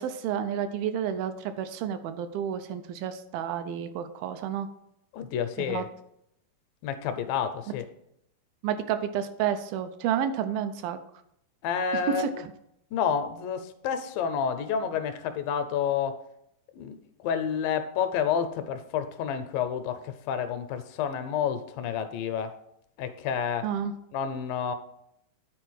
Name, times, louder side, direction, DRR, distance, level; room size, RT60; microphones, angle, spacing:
voice 1, 0.0-4.7 5.6-5.8 8.6-11.0 12.1-12.3 23.6-23.9, right 9 dB, 80° right, 9 dB, 2.4 m, -30 dB
voice 2, 5.1-5.9 6.8-7.9 11.6-12.4 12.9-16.2 16.8-17.0 17.2-22.6 23.0-23.7 24.1-24.7, left 7 dB, 80° left, 9 dB, 2.2 m, -29 dB
9.5 x 4.4 x 6.2 m, 0.77 s
omnidirectional pair, 4.2 m